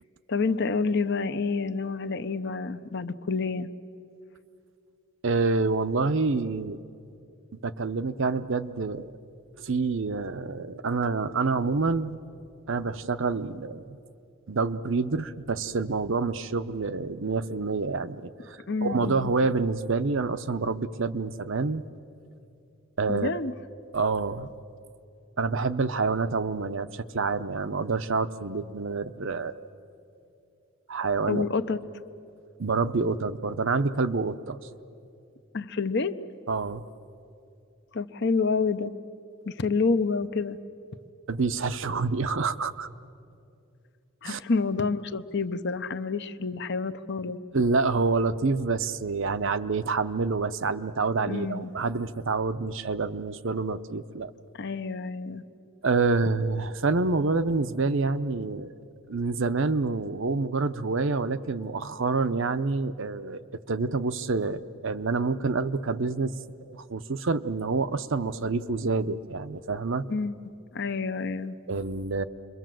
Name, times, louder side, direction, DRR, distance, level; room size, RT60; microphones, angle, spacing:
voice 1, 0.3-3.7 18.7-19.3 23.1-23.5 31.3-31.8 35.5-36.1 37.9-38.9 39.5-40.6 44.2-47.4 51.3-51.7 54.6-55.4 70.1-70.4 70.7-71.6, left 4 dB, 50° left, 11 dB, 0.8 m, -28 dB
voice 2, 5.2-6.8 7.6-9.1 9.6-12.2 12.7-14.0 14.5-21.8 23.0-23.4 23.9-24.5 25.4-29.7 30.9-31.4 32.6-34.6 36.5-36.8 41.3-42.9 44.2-44.4 47.5-54.3 55.8-58.7 59.1-63.4 63.7-66.3 66.6-70.1 71.7-72.2, right 4 dB, 60° right, 12 dB, 0.7 m, -27 dB
28.5 x 23.0 x 7.7 m, 2.6 s
head